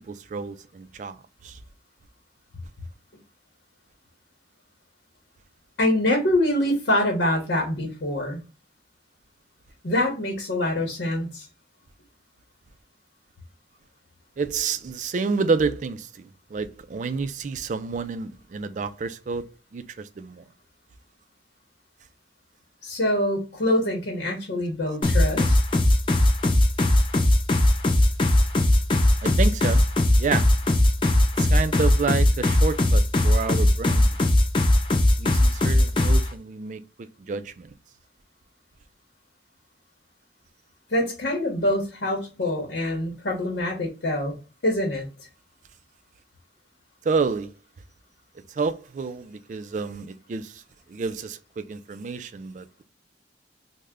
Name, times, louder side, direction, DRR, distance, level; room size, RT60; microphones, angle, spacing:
voice 1, 0.1-1.2 1.4-1.6 14.4-19.4 19.7-20.4 29.2-29.8 30.2-30.5 31.4-34.2 35.2-36.8 37.3-37.7 47.1-47.5 48.6-50.6 50.9-52.7, right 4 dB, 45° right, 0.3 m, -29 dB
voice 2, 5.8-8.4 9.8-11.4 22.8-25.6 40.9-44.4 44.6-45.1, left 1 dB, 75° left, 0.9 m, -25 dB
sound 1, 25.0-36.3, left 1 dB, 30° left, 0.4 m, -19 dB
3.3 x 2.1 x 3.5 m
head